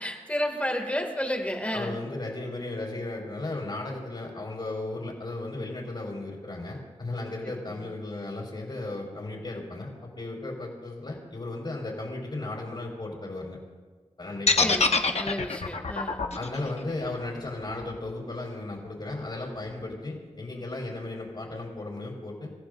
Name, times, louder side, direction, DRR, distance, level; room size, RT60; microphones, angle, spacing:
voice 1, 0.0-2.0 7.4-7.8 14.6-16.3, equal, 10° left, 2 dB, 2.3 m, -31 dB
voice 2, 1.7-13.6 14.2-14.7 16.3-22.5, left 2 dB, 45° left, -4 dB, 4.2 m, -35 dB
sound 1, 14.5-18.5, left 4 dB, 60° left, 1.1 m, -26 dB
28.0 x 15.5 x 2.6 m, 1.4 s
wide cardioid pair, 95°, 12 cm